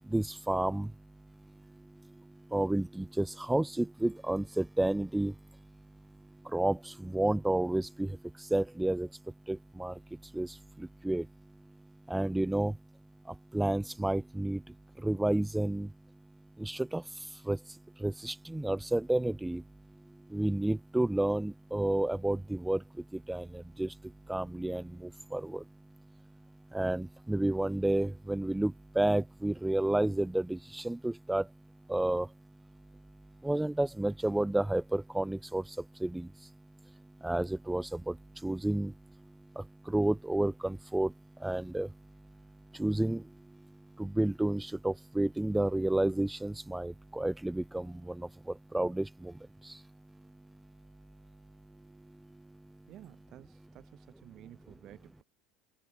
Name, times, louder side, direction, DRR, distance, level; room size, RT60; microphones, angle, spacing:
voice 1, 0.1-0.9 2.5-5.3 6.5-8.1 8.5-9.1 9.5-9.9 10.3-10.5 10.8-11.3 12.1-12.7 13.5-14.6 15.0-15.9 16.6-17.0 17.5-17.6 18.0-19.6 20.3-22.8 23.3-23.9 24.3-24.8 25.3-25.6 26.7-31.4 31.9-32.3 33.4-35.6 36.0-36.3 37.2-38.1 38.4-38.9 39.6-41.1 41.4-41.9 42.8-43.2 44.0-48.3 48.7-49.3, right 1 dB, 5° right, 0.3 m, -30 dB
voice 2, 52.9-55.2, right 13 dB, 50° right, 4.9 m, -53 dB
hypercardioid pair, 75°, 0 cm